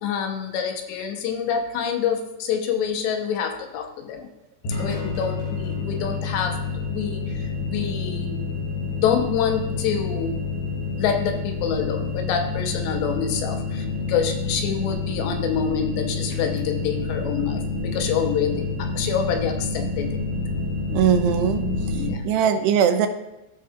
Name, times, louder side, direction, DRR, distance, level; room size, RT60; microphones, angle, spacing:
voice 1, 0.0-4.3 4.8-6.6 6.9-10.4 11.0-20.2 21.9-22.2, left 7 dB, 85° left, 4 dB, 3.0 m, -27 dB
sound 1, 4.6-22.1, left 3 dB, 70° left, 4.3 m, -28 dB
voice 2, 20.9-21.6 22.2-23.1, right 7 dB, 80° right, 7 dB, 2.6 m, -20 dB
16.0 x 5.6 x 2.4 m, 0.99 s
omnidirectional pair, 4.9 m